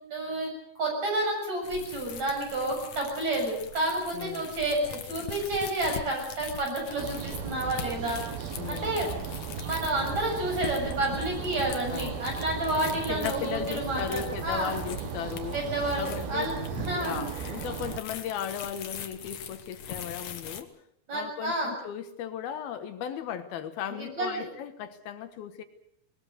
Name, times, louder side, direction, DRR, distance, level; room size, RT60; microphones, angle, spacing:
voice 1, 0.0-8.2 8.7-9.1 9.6-14.7 15.5-17.2 21.1-21.7 23.9-24.4, right 1 dB, 45° right, 1 dB, 8.4 m, -30 dB
sound 1, 1.6-20.6, left 8 dB, 55° left, 2.1 m, -42 dB
voice 2, 4.1-4.5 8.6-9.0 11.9-12.2 13.1-15.6 16.0-16.5 16.7-20.7 21.1-25.6, left 9 dB, 75° left, 9 dB, 3.2 m, -36 dB
sound 2, 7.0-18.0, right 9 dB, 75° right, 3.2 m, -37 dB
21.0 x 20.5 x 7.9 m, 0.72 s
omnidirectional pair, 4.4 m